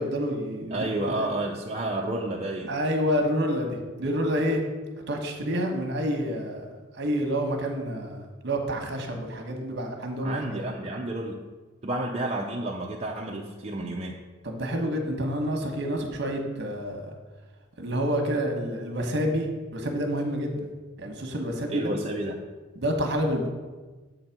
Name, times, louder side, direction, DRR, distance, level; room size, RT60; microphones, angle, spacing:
voice 1, 0.0-1.3 2.7-4.6 5.1-6.6 7.0-10.6 14.4-17.1 17.8-20.7 21.0-21.9 22.8-23.5, equal, 55° right, 3 dB, 1.1 m, -28 dB
voice 2, 0.7-2.7 10.2-11.4 11.8-14.2 21.7-22.4, right 1 dB, 30° right, -1 dB, 0.5 m, -30 dB
7.5 x 4.0 x 5.8 m, 1.3 s
head